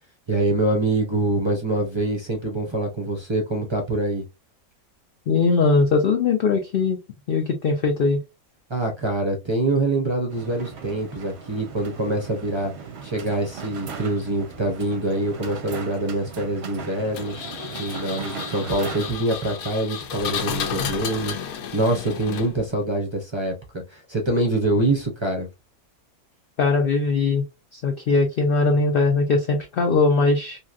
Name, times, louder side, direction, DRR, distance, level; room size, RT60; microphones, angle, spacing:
voice 1, 0.3-4.2 8.7-12.7 13.0-17.3 17.8-25.5, right 2 dB, 30° right, 0.5 m, -25 dB
voice 2, 5.3-7.0 7.3-8.2 26.6-27.4 27.7-30.6, left 3 dB, 65° left, 0.5 m, -20 dB
sound 1, 10.3-19.2, right 6 dB, 60° right, 0.8 m, -38 dB
Engine, 17.1-22.8, left 7 dB, 85° left, 1.1 m, -32 dB
3.1 x 2.8 x 2.4 m
omnidirectional pair, 1.5 m